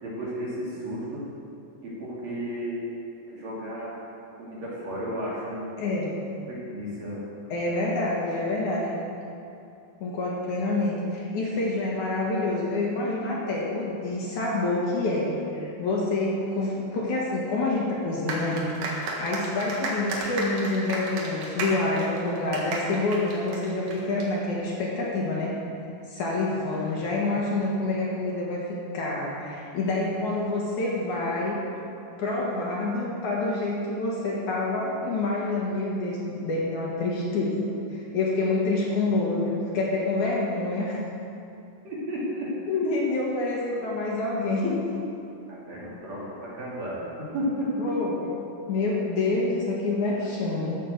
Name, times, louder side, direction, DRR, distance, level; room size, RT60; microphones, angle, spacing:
voice 1, 0.0-1.2 1.8-2.8 3.3-4.0 4.3-5.9 6.5-7.2 41.8-42.5 43.7-43.8 45.5-47.9 50.2-50.3, equal, 50° right, -7 dB, 4.0 m, -33 dB
voice 2, 5.8-6.1 7.5-9.0 10.0-18.6 18.9-25.5 26.1-28.6 28.9-31.6 32.2-41.0 42.7-45.0 47.8-48.2 48.7-50.8, left 2 dB, 60° left, -4 dB, 3.0 m, -27 dB
sound 1, 18.3-24.2, right 2 dB, 90° right, 3.7 m, -33 dB
15.5 x 7.6 x 6.8 m, 2.5 s
omnidirectional pair, 4.2 m